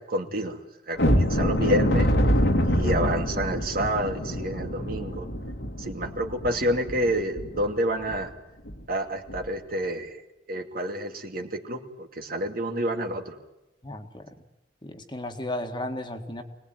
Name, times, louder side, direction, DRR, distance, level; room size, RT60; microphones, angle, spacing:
voice 1, 0.0-2.1 2.6-5.3 5.8-8.3 8.9-10.2 10.5-13.4, right 1 dB, 55° right, 4 dB, 2.4 m, -29 dB
sound 1, 1.0-7.7 8.1-8.2 8.6-8.8 9.3-9.5, equal, 80° left, 2.7 m, -25 dB
voice 2, 13.8-14.3 14.8-16.4, left 1 dB, 25° left, 5 dB, 1.9 m, -34 dB
25.0 x 19.5 x 9.3 m, 0.93 s
head